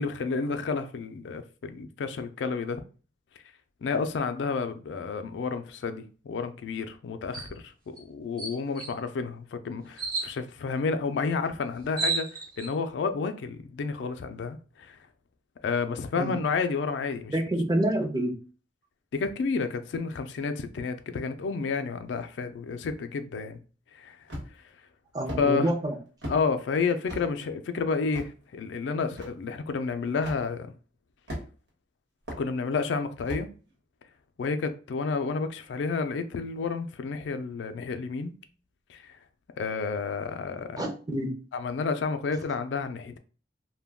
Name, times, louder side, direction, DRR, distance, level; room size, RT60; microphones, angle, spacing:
voice 1, 0.0-2.8 3.8-12.3 12.6-15.0 15.6-17.3 19.1-23.6 23.9-24.2 25.4-25.7 26.3-30.7 32.4-33.5 34.4-38.3 38.9-39.1 39.6-40.9 41.5-43.2, left 4 dB, 75° left, 0.3 m, -30 dB
sound 1, 7.3-7.5 8.0-8.1 8.4-8.9 10.0-10.3 11.4-11.5 11.7-12.7, right 4 dB, 55° right, 0.9 m, -31 dB
voice 2, 17.3-18.4 25.1-26.0 40.8-41.4, right 1 dB, 20° right, 0.5 m, -27 dB
sound 2, 24.3-24.7 25.3-25.5 26.2-26.4 27.1-27.3 28.1-28.3 29.2-29.3 30.2-30.4 31.3-31.7 32.3-32.4 33.3-33.5, equal, 75° right, 1.1 m, -36 dB
2.2 x 2.2 x 3.4 m
head